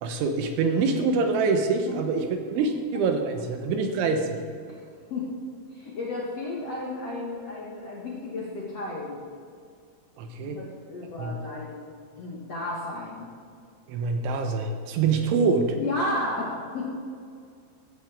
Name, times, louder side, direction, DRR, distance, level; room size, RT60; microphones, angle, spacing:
voice 1, 0.0-4.4 10.2-10.6 11.2-11.4 13.9-15.8, right 4 dB, 80° right, 5 dB, 3.3 m, -25 dB
voice 2, 5.7-9.2 10.4-11.8 12.1-13.3 15.8-16.9, left 2 dB, 50° left, -6 dB, 2.0 m, -33 dB
15.0 x 14.5 x 3.7 m, 2.2 s
omnidirectional pair, 5.6 m